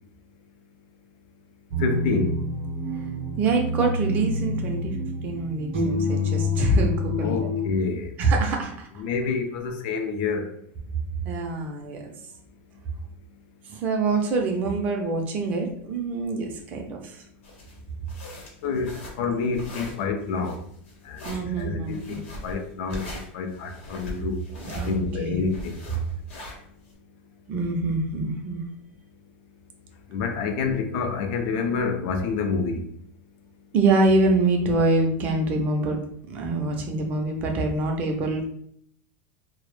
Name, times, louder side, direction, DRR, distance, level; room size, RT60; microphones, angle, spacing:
sound 1, 1.7-7.7, left 2 dB, 70° right, 0.6 m, -27 dB
voice 1, 1.8-2.4 7.2-8.1 9.0-10.5 18.6-20.6 21.1-21.2 21.6-23.1 23.3-24.4 24.8-25.8 30.1-32.8, left 5 dB, 55° left, 5 dB, 0.4 m, -28 dB
voice 2, 3.4-5.0 5.2-7.5 8.2-8.9 11.2-12.1 13.7-17.2 21.2-22.2 24.6-25.4 27.5-28.6 33.7-36.0 36.3-38.5, right 2 dB, 25° right, 2 dB, 0.4 m, -25 dB
sound 2, 17.4-26.9, left 1 dB, 90° left, 0.9 m, -40 dB
2.1 x 2.0 x 3.0 m, 0.65 s
supercardioid pair, 170°, 6 cm